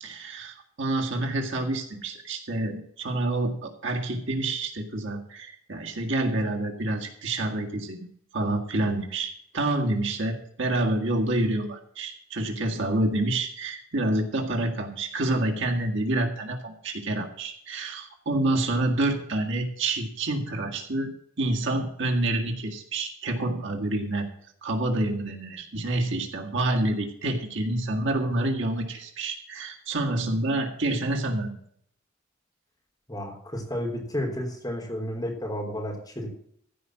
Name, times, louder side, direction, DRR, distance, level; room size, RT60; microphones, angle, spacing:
voice 1, 0.0-8.0 8.3-24.3 24.6-31.6, right 2 dB, 65° right, 2 dB, 1.9 m, -28 dB
voice 2, 33.1-36.3, equal, 20° left, 0 dB, 3.4 m, -32 dB
15.0 x 5.2 x 7.4 m, 0.65 s
head